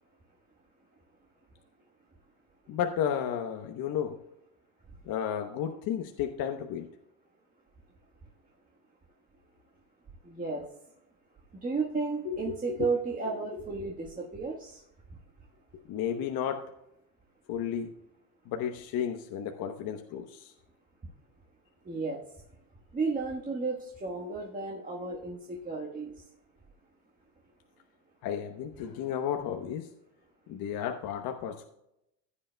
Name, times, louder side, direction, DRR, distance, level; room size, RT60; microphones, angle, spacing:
voice 1, 2.7-4.2 5.1-6.9 12.2-12.8 13.3-13.4 15.9-16.7 17.5-17.9 18.5-20.5 28.2-29.9 30.5-31.6, left 9 dB, 50° left, 5 dB, 1.0 m, -33 dB
voice 2, 10.2-10.6 11.6-14.8 21.8-22.2 22.9-26.1, right 4 dB, 20° right, -3 dB, 1.4 m, -33 dB
15.0 x 8.5 x 2.2 m, 0.83 s
supercardioid pair, 110°, 46 cm